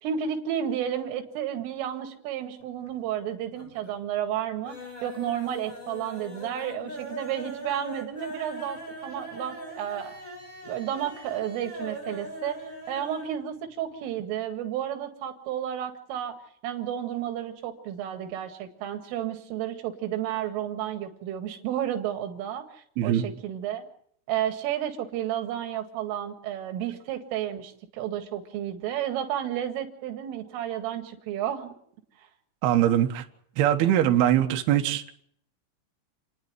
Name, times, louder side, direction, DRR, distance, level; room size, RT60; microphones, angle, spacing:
voice 1, 0.0-10.1 10.6-12.6 12.9-16.4 16.6-22.7 23.0-23.9 24.3-31.7, right 10 dB, 85° right, 6 dB, 4.5 m, -32 dB
sound 1, 2.6-3.2 3.5-4.0 4.3-13.4 13.7-13.8 14.1-14.2, equal, 15° left, 6.6 m, -41 dB
voice 2, 32.6-33.2 33.6-35.0, right 11 dB, 65° right, 4 dB, 3.0 m, -22 dB
29.5 x 10.5 x 9.4 m, 0.67 s
omnidirectional pair, 5.7 m